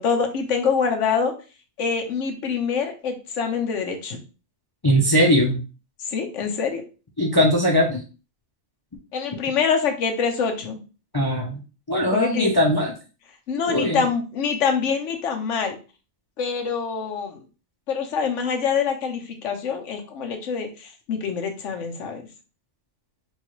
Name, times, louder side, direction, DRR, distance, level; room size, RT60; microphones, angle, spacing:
voice 1, 0.0-1.3 1.8-4.2 6.0-6.8 9.1-10.8 12.1-12.6 13.5-15.8 16.4-17.4 17.9-22.2, left 6 dB, 90° left, 5 dB, 1.1 m, -25 dB
voice 2, 4.8-5.6 7.2-8.0 11.1-11.6 11.9-12.9 13.7-14.0, equal, 30° left, -1 dB, 0.4 m, -20 dB
4.3 x 2.4 x 3.0 m, 0.33 s
omnidirectional pair, 1.2 m